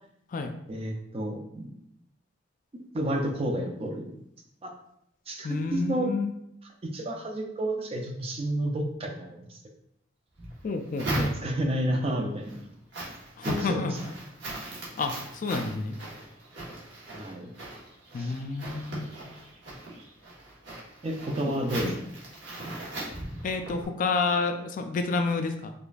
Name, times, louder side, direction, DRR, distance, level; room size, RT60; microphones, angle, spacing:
voice 1, 0.7-1.7 2.7-4.1 4.6-4.7 5.3-6.1 6.8-9.6 11.0-12.7 13.4-14.0 17.1-17.5 18.2-18.4 21.0-21.9, right 1 dB, 30° right, 3 dB, 0.4 m, -30 dB
voice 2, 5.4-6.3 10.6-11.3 13.4-14.0 15.0-16.0 18.1-19.1 21.5-21.6 21.8-22.0 23.4-25.7, left 4 dB, 45° left, 6 dB, 0.3 m, -29 dB
sound 1, 10.4-11.8 12.3-23.9, right 1 dB, 70° right, 1.2 m, -39 dB
4.9 x 2.4 x 2.3 m, 0.77 s
head